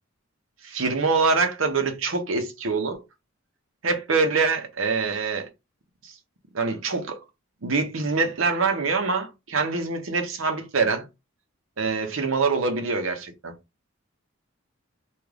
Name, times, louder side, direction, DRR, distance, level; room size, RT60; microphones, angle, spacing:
voice 1, 0.6-3.0 3.8-5.5 6.5-7.2 7.6-11.1 11.8-13.5, right 4 dB, 75° right, 0.8 m, -24 dB
3.6 x 2.5 x 3.3 m
head